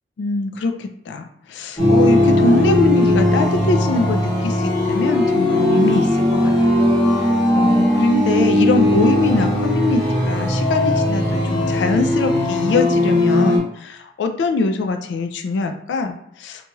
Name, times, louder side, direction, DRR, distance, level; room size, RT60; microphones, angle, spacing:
voice 1, 0.2-6.8 7.5-16.7, left 3 dB, 85° left, 6 dB, 0.3 m, -22 dB
sound 1, 1.8-13.6, left 1 dB, 25° left, 1.2 m, -18 dB
2.9 x 2.8 x 2.3 m, 0.72 s
head